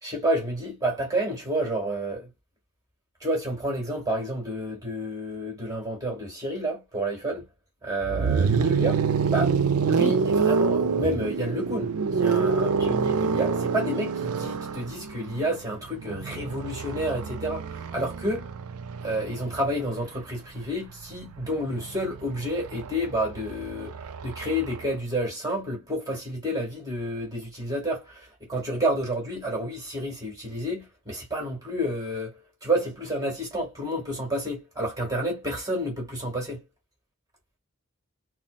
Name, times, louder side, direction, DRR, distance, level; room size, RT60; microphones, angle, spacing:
voice 1, 0.0-2.3 3.2-7.4 7.8-9.0 9.3-9.6 9.9-18.5 19.0-36.6, right 1 dB, 15° right, 1.8 m, -30 dB
sound 1, 8.0-20.0 21.2-24.8, right 5 dB, 85° right, 0.4 m, -27 dB
5.7 x 2.0 x 2.4 m
head